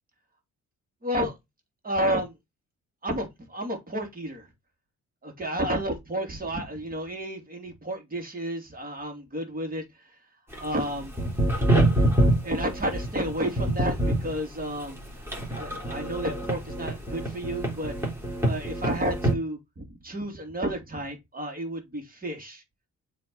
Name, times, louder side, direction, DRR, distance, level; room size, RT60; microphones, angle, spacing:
voice 1, 1.0-1.4 1.8-2.3 3.0-4.5 5.2-9.8 10.6-11.1 12.4-15.0 15.5-17.9 18.4-22.6, right 1 dB, 30° right, 3.0 m, -31 dB
sound 1, 10.5-19.3, right 1 dB, 10° right, 3.3 m, -25 dB
7.5 x 3.6 x 5.4 m
cardioid pair, 90°, 30 cm